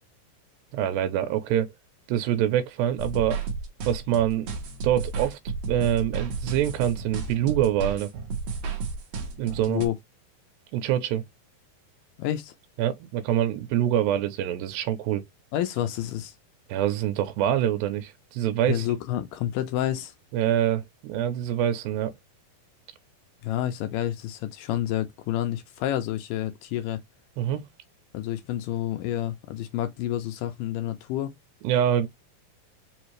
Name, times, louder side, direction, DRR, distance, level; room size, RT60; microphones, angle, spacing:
voice 1, 0.7-1.7 2.1-3.4 3.9-4.5 4.8-5.4 5.7-8.1 9.4-9.8 10.7-11.2 12.8-15.2 16.7-18.9 20.3-22.1 27.4-27.6 31.6-32.1, right 11 dB, 85° right, 2.4 m, -25 dB
sound 1, 3.0-9.9, right 4 dB, 65° right, 1.7 m, -33 dB
voice 2, 12.2-12.5 15.5-16.4 18.7-20.1 23.4-27.0 28.1-31.3, left 12 dB, 80° left, 2.0 m, -29 dB
5.6 x 2.6 x 3.1 m
omnidirectional pair, 4.1 m